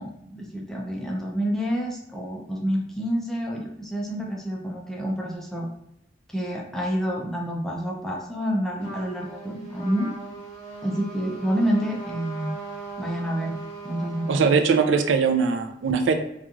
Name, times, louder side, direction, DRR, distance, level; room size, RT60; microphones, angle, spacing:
voice 1, 0.0-5.7 6.3-10.1 10.8-12.5 13.0-13.6 13.8-14.5, equal, ahead, -2 dB, 0.4 m, -28 dB
Trumpet, 8.8-14.4, right 3 dB, 35° left, 1.2 m, -39 dB
voice 2, 14.3-16.1, right 5 dB, 80° right, 6 dB, 0.4 m, -21 dB
3.0 x 2.4 x 2.4 m, 0.81 s
head